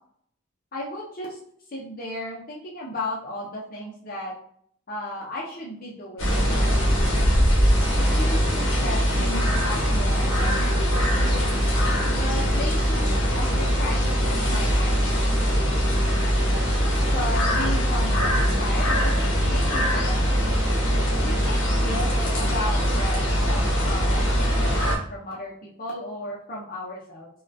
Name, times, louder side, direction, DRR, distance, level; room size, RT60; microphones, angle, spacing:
voice 1, 0.7-1.4 1.7-4.4 4.9-6.7 7.9-11.6 12.1-15.6 17.0-20.4 21.2-22.1 22.4-23.2 23.5-27.3, left 1 dB, 40° left, -4 dB, 0.6 m, -35 dB
sound 1, 6.2-25.0, equal, 65° left, 1.0 m, -22 dB
3.5 x 2.2 x 2.6 m, 0.63 s
head